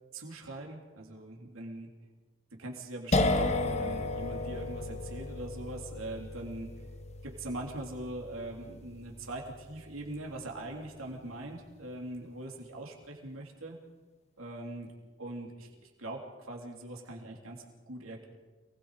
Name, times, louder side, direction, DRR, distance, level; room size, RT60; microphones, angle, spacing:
voice 1, 0.1-1.9 2.6-6.7 7.2-13.8 14.4-14.9 15.2-18.2, right 2 dB, 85° right, 0 dB, 3.4 m, -42 dB
sound 1, 3.1-10.7, left 2 dB, 30° left, 1.0 m, -34 dB
28.5 x 20.0 x 5.0 m, 1.4 s
head